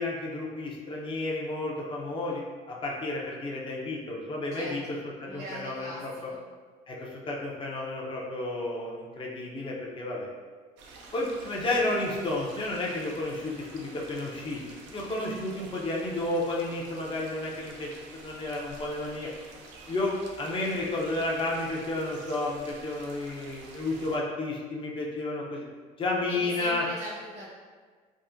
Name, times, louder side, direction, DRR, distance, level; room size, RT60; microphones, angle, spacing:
voice 1, 0.0-2.4 2.7-6.3 6.9-10.3 11.1-14.6 14.9-19.3 19.9-25.6 26.0-26.8, left 2 dB, 25° left, -3 dB, 0.6 m, -32 dB
voice 2, 4.6-5.0 5.3-6.0 6.3-6.4 26.3-27.5, right 1 dB, 55° right, -8 dB, 1.0 m, -40 dB
sound 1, 10.8-24.2, right 3 dB, 75° right, 0.5 m, -48 dB
3.5 x 2.1 x 2.6 m, 1.5 s
supercardioid pair, 75°, 19 cm